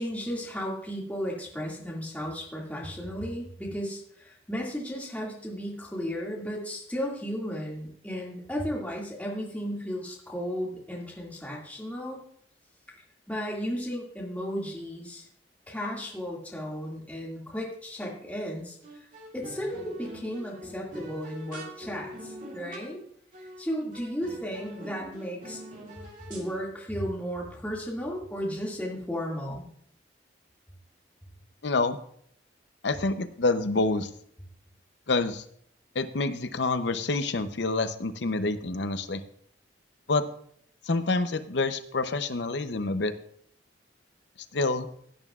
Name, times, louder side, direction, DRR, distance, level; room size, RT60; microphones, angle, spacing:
voice 1, 0.0-12.2 13.3-15.3 15.7-19.1 19.3-23.0 23.4-25.6 26.3-29.7, equal, 10° left, -4 dB, 2.1 m, -34 dB
sound 1, 18.0-18.4 18.8-23.0 23.3-23.7 23.9-26.6, right 1 dB, 45° right, 2.3 m, -44 dB
voice 2, 31.6-32.0 32.8-34.1 35.1-35.4 35.9-39.2 40.1-40.2 40.8-43.1 44.5-44.9, left 3 dB, 70° left, 10 dB, 0.7 m, -27 dB
16.5 x 9.2 x 2.4 m, 0.63 s
head